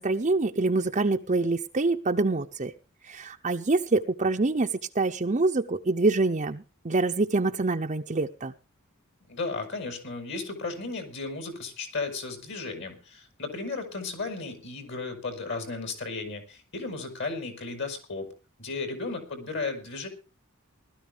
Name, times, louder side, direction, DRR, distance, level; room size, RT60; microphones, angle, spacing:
voice 1, 0.0-2.7 3.0-8.5, right 3 dB, 35° right, 3 dB, 0.6 m, -26 dB
voice 2, 9.3-18.3 18.6-20.1, left 3 dB, 55° left, 6 dB, 4.8 m, -34 dB
20.0 x 13.0 x 3.4 m, 0.34 s
head